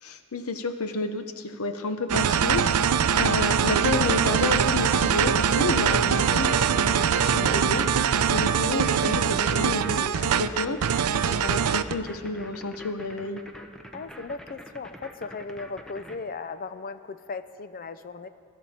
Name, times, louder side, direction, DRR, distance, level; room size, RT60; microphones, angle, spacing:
voice 1, 0.0-13.4, left 3 dB, 70° left, 8 dB, 0.8 m, -31 dB
sound 1, 2.1-11.9, right 7 dB, 85° right, 0.5 m, -23 dB
sound 2, 6.7-16.2, equal, 5° left, 0.9 m, -45 dB
voice 2, 13.9-18.3, left 4 dB, 40° left, 12 dB, 0.6 m, -37 dB
21.0 x 11.5 x 4.3 m, 2.6 s
head